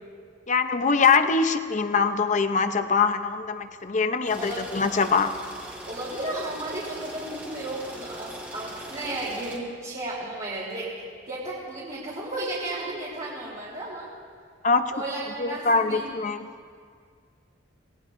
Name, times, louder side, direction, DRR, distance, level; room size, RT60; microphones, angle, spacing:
voice 1, 0.5-5.3 14.6-14.9 15.4-16.5, left 5 dB, 40° left, 9 dB, 0.7 m, -23 dB
sound 1, 4.3-9.6, equal, 10° right, 2.1 m, -41 dB
voice 2, 5.9-14.1 14.9-16.1, right 2 dB, 40° right, -8 dB, 3.4 m, -34 dB
27.0 x 18.5 x 2.6 m, 2.1 s
head